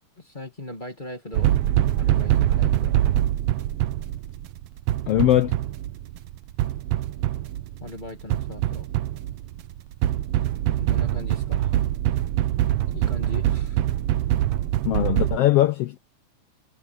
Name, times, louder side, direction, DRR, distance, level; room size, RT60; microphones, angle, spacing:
voice 1, 0.2-1.6 2.0-3.0 7.8-8.9 10.8-11.8 12.9-13.8, left 2 dB, 20° left, 1.8 m, -39 dB
sound 1, 1.3-15.4, right 13 dB, 80° right, 1.3 m, -24 dB
voice 2, 5.1-5.5 14.8-16.0, left 14 dB, 85° left, 1.3 m, -20 dB
omnidirectional pair, 3.6 m